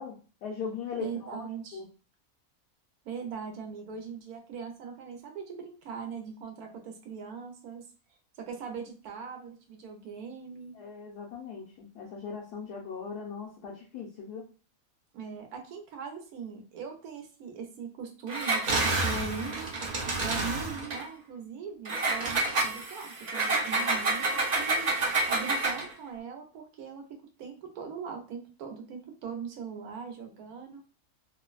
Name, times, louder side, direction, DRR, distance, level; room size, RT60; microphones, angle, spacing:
voice 1, 0.0-1.4 1.7-1.9 10.7-14.5, left 6 dB, 90° left, -4 dB, 1.2 m, -39 dB
voice 2, 1.0-1.8 3.0-7.9 8.4-10.7 15.1-19.7 20.2-27.0 27.4-30.9, right 6 dB, 80° right, 3 dB, 1.1 m, -40 dB
Engine, 18.3-21.0 21.8-25.9, right 2 dB, 60° right, 0.4 m, -29 dB
3.1 x 2.0 x 2.3 m, 0.36 s
omnidirectional pair, 1.6 m